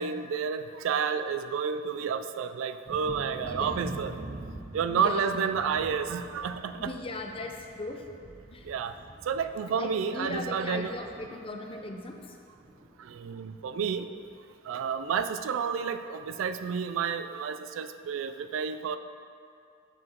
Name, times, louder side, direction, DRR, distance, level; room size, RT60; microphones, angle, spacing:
voice 1, 0.0-4.2 4.7-6.9 8.6-9.0 9.2-10.9 13.0-14.1 14.6-19.0, right 6 dB, 80° right, 11 dB, 0.3 m, -30 dB
Thunder, 2.9-12.3 12.5-13.3 13.7-13.8 14.2-14.4, right 2 dB, 30° right, 0.5 m, -45 dB
voice 2, 3.4-4.0 4.9-5.4 6.8-8.0 8.5-8.7 9.7-12.4, left 2 dB, 30° left, 3 dB, 0.5 m, -38 dB
6.7 x 6.1 x 3.7 m, 2.4 s
head